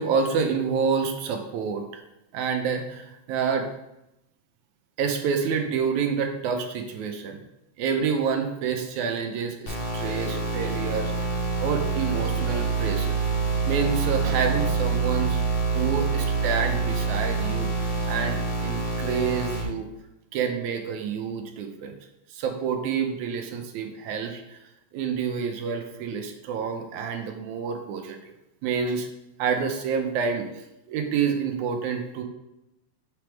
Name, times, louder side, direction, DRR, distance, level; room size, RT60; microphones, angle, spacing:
voice 1, 0.0-2.0 2.3-3.7 5.0-7.4 7.8-11.1 11.6-13.2 13.7-15.4 15.7-19.9 20.3-21.9 22.3-24.6 24.9-28.3 28.6-29.1 29.4-30.5 30.9-32.2, right 6 dB, 85° right, 5 dB, 2.1 m, -28 dB
sound 1, 9.7-19.6, right 4 dB, 80° left, 2.7 m, -26 dB
6.8 x 3.5 x 4.5 m, 0.89 s
omnidirectional pair, 3.4 m